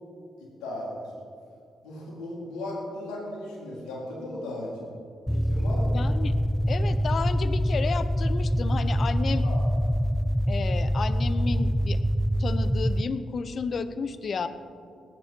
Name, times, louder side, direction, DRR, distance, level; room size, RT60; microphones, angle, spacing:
voice 1, 0.6-1.1 1.8-4.9 5.3-6.0 9.4-9.6, left 1 dB, 80° left, -4 dB, 4.1 m, -36 dB
sound 1, 5.3-13.0, equal, ahead, 0.5 m, -25 dB
voice 2, 5.9-6.4 6.7-9.5 10.5-12.0 12.4-14.5, left 5 dB, 55° left, 12 dB, 0.9 m, -32 dB
19.0 x 9.9 x 4.6 m, 2.4 s
hypercardioid pair, 40°, 0 cm